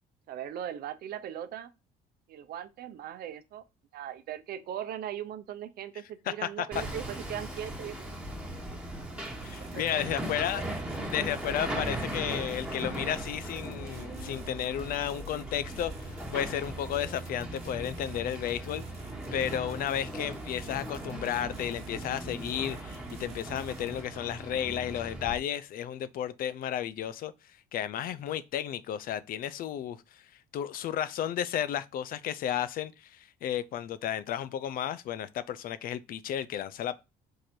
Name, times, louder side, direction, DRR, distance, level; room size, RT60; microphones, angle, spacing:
voice 1, 0.3-1.7 2.3-3.6 3.9-8.2 8.7-8.8 9.4-10.3, right 10 dB, 65° right, 0.7 m, -39 dB
voice 2, 6.3-6.7 9.4-10.6 11.0-18.8 19.3-27.3 27.7-30.2 30.5-37.0, left 10 dB, 60° left, 0.4 m, -33 dB
Hammer, 6.7-25.3, right 1 dB, 5° right, 1.2 m, -39 dB
sound 1, 9.2-24.0, right 4 dB, 40° right, 1.5 m, -47 dB
4.8 x 2.5 x 4.3 m
cardioid pair, 110°, 17 cm